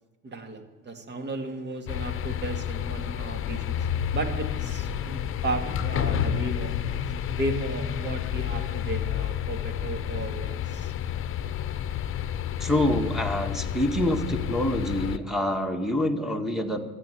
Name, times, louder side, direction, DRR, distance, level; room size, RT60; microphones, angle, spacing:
voice 1, 0.2-3.8 4.1-6.7 7.3-10.9, right 2 dB, 35° right, 6 dB, 2.4 m, -34 dB
sound 1, 1.9-15.2, left 9 dB, 45° left, 0.9 m, -30 dB
voice 2, 12.6-16.8, left 1 dB, ahead, 7 dB, 1.8 m, -26 dB
13.5 x 9.7 x 9.3 m, 1.3 s
cardioid pair, 110°, 31 cm